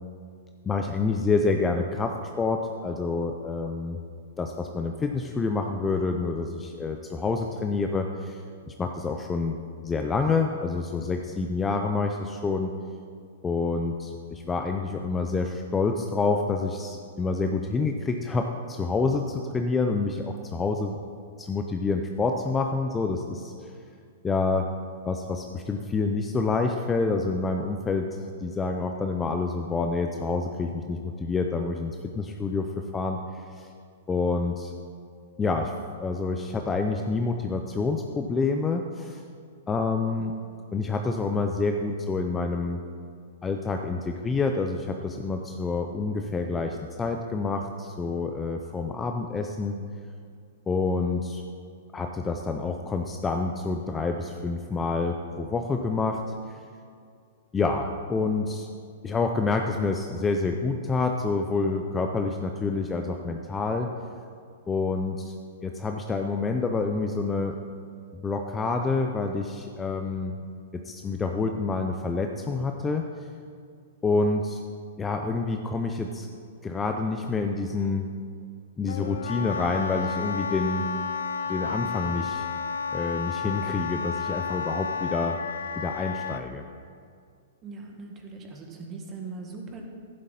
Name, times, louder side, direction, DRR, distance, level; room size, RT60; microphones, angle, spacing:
voice 1, 0.6-4.0 4.4-9.6 9.8-12.7 13.4-21.0 21.4-23.7 24.2-24.7 25.1-28.1 28.4-33.2 33.5-33.7 34.1-34.7 35.4-35.7 36.0-39.2 39.7-40.3 40.7-42.8 43.4-49.8 50.7-51.4 51.9-56.2 57.5-58.7 59.0-63.9 64.7-65.3 65.6-67.5 68.1-70.4 70.8-73.1 74.0-74.6 75.0-76.3 76.6-78.1 78.8-80.8 81.5-82.5 82.9-85.4 85.8-86.6, left 3 dB, 15° left, 4 dB, 0.5 m, -27 dB
Wind instrument woodwind instrument, 78.9-86.4, left 6 dB, 80° left, 0.6 m, -32 dB
voice 2, 87.6-89.8, right 4 dB, 25° right, 1 dB, 1.7 m, -40 dB
11.0 x 11.0 x 4.2 m, 2.2 s
hypercardioid pair, 145°, 0 cm